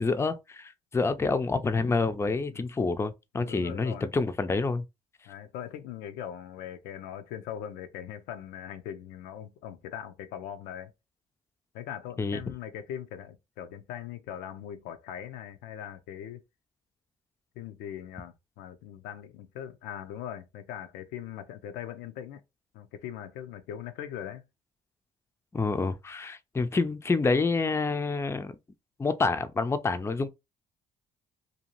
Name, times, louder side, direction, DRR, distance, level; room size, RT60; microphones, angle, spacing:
voice 1, 0.0-4.8 12.2-12.4 25.5-28.6 29.0-30.3, left 3 dB, 15° left, 0.4 m, -28 dB
voice 2, 3.3-4.1 5.3-10.9 11.7-16.4 17.6-22.4 22.7-24.4, left 10 dB, 90° left, 0.4 m, -40 dB
2.6 x 2.3 x 2.9 m
supercardioid pair, 70°, 16 cm